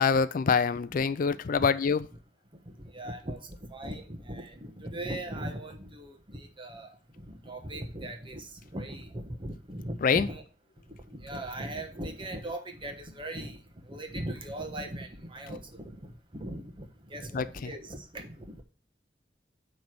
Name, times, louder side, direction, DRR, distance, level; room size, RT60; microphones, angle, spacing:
voice 1, 0.0-2.1 10.0-10.3 15.5-15.6 17.3-17.7, left 5 dB, 50° left, 14 dB, 0.4 m, -25 dB
voice 2, 2.9-6.9 7.2-10.4 11.1-13.6 13.9-16.8 17.1-18.6, right 1 dB, 30° right, 4 dB, 1.2 m, -39 dB
9.1 x 3.3 x 6.0 m, 0.36 s
head